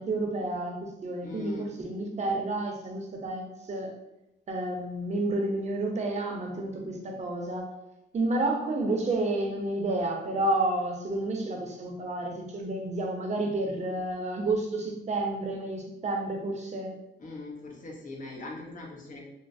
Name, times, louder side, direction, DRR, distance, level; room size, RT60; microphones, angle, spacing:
voice 1, 0.0-3.9 4.5-7.7 8.1-16.9, right 2 dB, 40° right, 1 dB, 0.6 m, -30 dB
voice 2, 1.2-1.7 17.2-19.2, left 2 dB, 45° left, -1 dB, 0.8 m, -41 dB
3.0 x 2.0 x 2.5 m, 0.91 s
cardioid pair, 105°, 19 cm